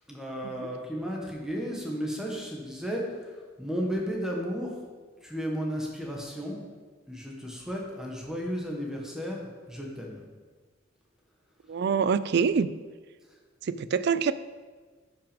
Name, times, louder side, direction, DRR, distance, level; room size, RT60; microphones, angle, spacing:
voice 1, 0.1-4.8 5.2-6.6 7.1-10.2, equal, 5° right, -1 dB, 1.5 m, -34 dB
voice 2, 11.7-12.7 13.6-14.3, right 6 dB, 60° right, 15 dB, 0.4 m, -25 dB
9.8 x 6.0 x 5.2 m, 1.4 s
head